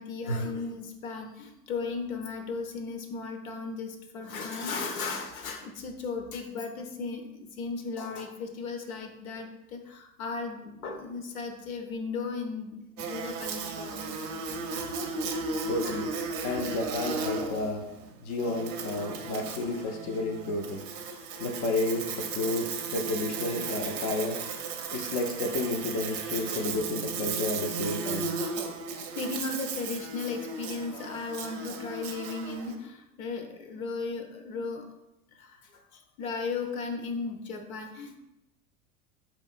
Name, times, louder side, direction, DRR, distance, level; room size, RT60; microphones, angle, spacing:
voice 1, 0.0-14.5 15.8-16.0 17.2-17.3 24.2-24.3 26.5-26.6 29.2-34.9 35.3-38.2, left 4 dB, 70° left, 6 dB, 0.7 m, -36 dB
Buzz, 13.0-32.7, right 4 dB, 40° right, 0.6 m, -35 dB
voice 2, 15.7-16.1 16.4-17.9 18.2-20.8 21.4-24.4 24.9-28.3, left 2 dB, 30° left, 3 dB, 0.4 m, -31 dB
4.6 x 2.9 x 2.4 m, 0.90 s
figure-of-eight pair, 90°, 44 cm